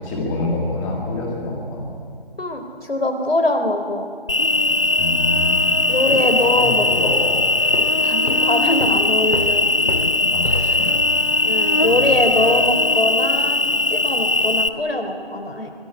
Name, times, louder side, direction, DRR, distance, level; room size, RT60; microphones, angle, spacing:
voice 1, 0.0-1.9 5.0-5.7 6.1-6.2 6.4-7.4 10.3-10.9 11.8-12.4, left 2 dB, 5° left, -2 dB, 1.2 m, -26 dB
voice 2, 2.4-4.1 5.9-7.2 8.0-9.6 11.4-13.6 13.9-15.7, left 2 dB, 70° left, 5 dB, 4.1 m, -22 dB
Cricket, 4.3-14.7, left 2 dB, 30° left, 0.6 m, -19 dB
Walk footsteps, 7.7-11.0, left 2 dB, 85° left, 2.3 m, -31 dB
24.0 x 20.0 x 9.7 m, 2.4 s
figure-of-eight pair, 165°, 31 cm